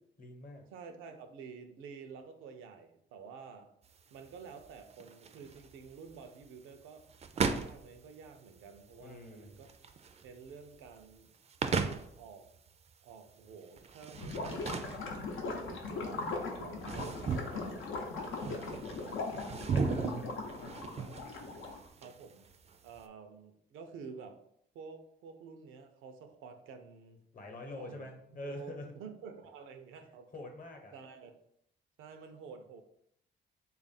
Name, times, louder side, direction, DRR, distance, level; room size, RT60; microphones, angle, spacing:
voice 1, 0.2-0.6 9.0-9.6 19.7-20.9 27.3-28.9 30.3-30.9, left 2 dB, 45° left, 3 dB, 0.9 m, -45 dB
voice 2, 0.7-3.7 4.1-7.1 7.3-9.7 10.2-11.4 11.8-12.5 13.0-14.8 15.4-17.8 18.3-19.6 22.0-22.4 22.8-24.4 24.7-27.2 27.8-30.3 30.9-31.3 32.0-32.8, right 5 dB, 85° right, 7 dB, 0.5 m, -50 dB
sound 1, 3.8-23.0, right 5 dB, 35° right, 0.4 m, -39 dB
Gurgling / Liquid, 14.1-21.9, left 3 dB, 90° left, 0.7 m, -39 dB
3.4 x 2.4 x 4.0 m, 0.72 s
cardioid pair, 90°, 20 cm